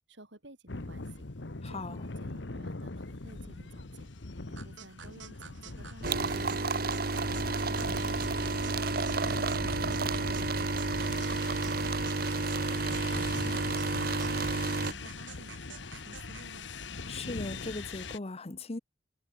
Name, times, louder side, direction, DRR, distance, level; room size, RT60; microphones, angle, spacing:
voice 1, 0.1-1.3 1.7-4.1 4.5-8.2 13.7-16.7, right 1 dB, 70° right, 6.9 m, -54 dB
sound 1, 0.7-18.2, left 3 dB, 70° left, 1.3 m, -42 dB
voice 2, 1.6-2.0 17.1-18.8, left 2 dB, 35° left, 0.8 m, -38 dB
sound 2, 4.6-16.5, right 7 dB, 85° right, 4.6 m, -49 dB
sound 3, 6.0-14.9, right 3 dB, 50° right, 1.5 m, -31 dB
head